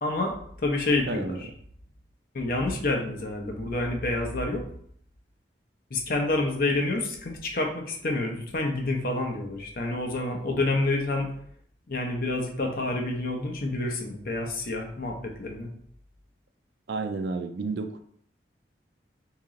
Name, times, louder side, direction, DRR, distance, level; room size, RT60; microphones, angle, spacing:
voice 1, 0.0-0.3 0.6-1.5 2.3-4.6 5.9-11.3 11.9-15.7, left 2 dB, 55° left, 2 dB, 0.7 m, -28 dB
voice 2, 1.1-1.4 16.9-18.0, right 3 dB, 70° right, 8 dB, 0.4 m, -31 dB
2.9 x 2.9 x 3.7 m, 0.63 s
head